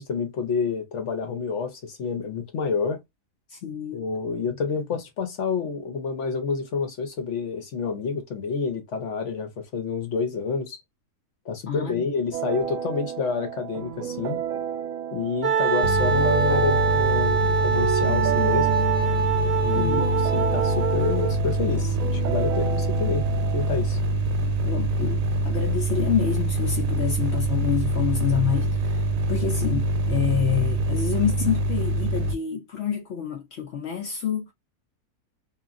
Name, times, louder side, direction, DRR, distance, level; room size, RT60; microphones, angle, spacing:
voice 1, 0.0-3.0 3.9-10.8 11.5-14.4 15.1-18.7 19.6-23.3 23.5-24.0, left 5 dB, 60° left, 0.8 m, -28 dB
voice 2, 3.5-4.0 11.7-12.1 19.7-20.1 24.4-28.7 29.3-34.5, left 8 dB, 85° left, 0.5 m, -27 dB
sound 1, 12.3-23.9, right 10 dB, 70° right, 0.9 m, -32 dB
Wind instrument woodwind instrument, 15.4-21.4, right 5 dB, 50° right, 0.4 m, -24 dB
sound 2, 15.8-32.3, right 2 dB, 85° right, 1.2 m, -25 dB
2.9 x 2.4 x 2.5 m
omnidirectional pair, 1.7 m